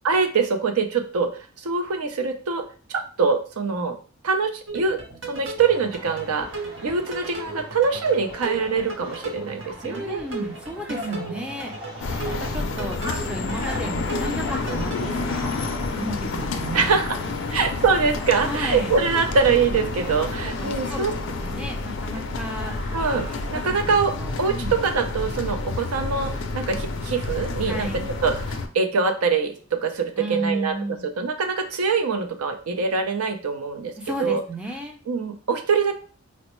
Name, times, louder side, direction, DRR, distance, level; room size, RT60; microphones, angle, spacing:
voice 1, 0.0-2.6 2.9-3.9 4.2-5.0 5.3-6.5 6.8-10.2 10.9-11.2 16.7-17.1 17.5-21.1 22.9-23.2 23.5-24.1 24.4-27.9 28.2-30.8 31.2-33.9 34.2-34.4 35.1-36.0, right 5 dB, 85° right, 6 dB, 0.6 m, -24 dB
sound 1, 4.7-15.7, right 3 dB, 55° right, 0.8 m, -37 dB
sound 2, 5.6-23.9, equal, 25° right, 1.5 m, -41 dB
voice 2, 9.8-11.7 12.2-15.5 16.0-17.6 18.4-19.0 20.6-21.1 21.4-22.8 23.5-24.8 27.6-28.1 30.2-31.1 34.0-35.0, right 1 dB, 5° right, 1 dB, 0.4 m, -33 dB
sound 3, 12.0-28.7, left 3 dB, 55° left, 0.4 m, -29 dB
4.2 x 2.0 x 3.0 m, 0.39 s
head